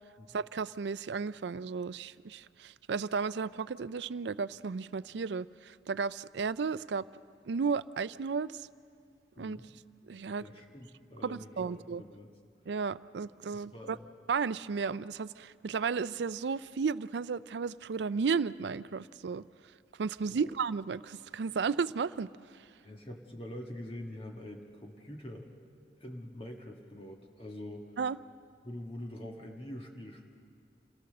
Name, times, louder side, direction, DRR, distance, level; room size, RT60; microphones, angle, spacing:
voice 1, 0.3-7.0 7.5-8.6 9.4-9.6 10.1-10.4 11.2-12.0 12.7-14.0 14.3-19.4 20.0-22.3 28.0-28.2, right 5 dB, 75° right, 17 dB, 0.4 m, -33 dB
voice 2, 9.3-9.7 10.4-12.3 13.5-14.0 20.3-20.5 22.8-25.5 26.0-27.8 28.6-30.3, left 1 dB, 30° left, 1 dB, 1.6 m, -45 dB
27.5 x 17.5 x 6.6 m, 2.3 s
head